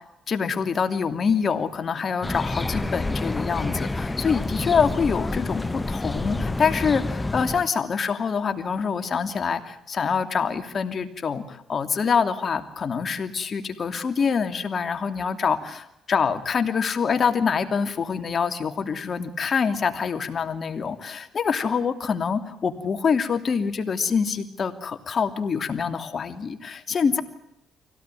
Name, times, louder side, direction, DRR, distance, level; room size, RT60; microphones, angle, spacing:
voice 1, 0.3-15.8 16.1-27.2, left 6 dB, 45° left, 8 dB, 2.8 m, -25 dB
sound 1, 2.2-7.7, left 2 dB, 15° left, 0.9 m, -28 dB
25.0 x 17.5 x 9.2 m, 0.80 s
cardioid pair, 90°, 0 cm